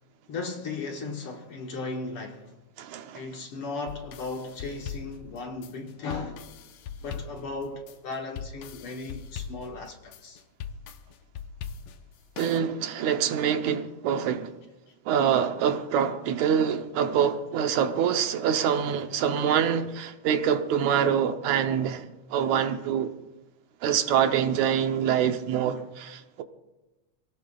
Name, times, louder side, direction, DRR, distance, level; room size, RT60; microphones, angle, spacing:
voice 1, 0.3-2.6 3.1-6.5 7.0-10.4 14.9-15.0, left 3 dB, 60° left, 1.9 m, -36 dB
voice 2, 2.8-3.2 12.4-14.6 15.1-23.1 23.8-26.4, right 8 dB, 80° right, 2.2 m, -25 dB
sound 1, 3.9-12.6, left 7 dB, 75° left, 1.5 m, -41 dB
26.5 x 17.5 x 2.4 m
omnidirectional pair, 3.3 m